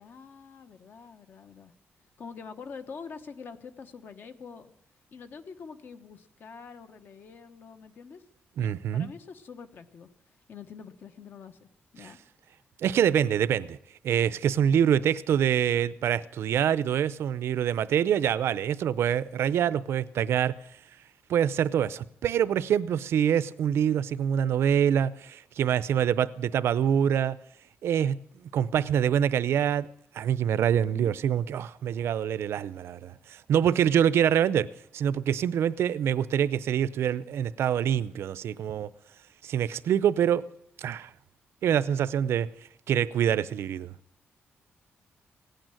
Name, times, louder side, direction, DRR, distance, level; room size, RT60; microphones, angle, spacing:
voice 1, 0.0-1.7 2.2-4.7 5.1-8.2 8.6-11.7 11.9-12.2 14.7-15.1 30.8-31.1, left 5 dB, 50° left, 1.2 m, -45 dB
voice 2, 8.6-9.1 12.0-12.1 12.8-13.8 14.0-20.5 21.3-27.4 27.8-28.2 28.4-29.9 30.1-34.7 34.9-38.9 39.4-40.5 40.8-41.1 41.6-42.5 42.9-43.9, right 9 dB, 75° right, 0.6 m, -25 dB
17.0 x 9.1 x 9.1 m
wide cardioid pair, 175°, 4 cm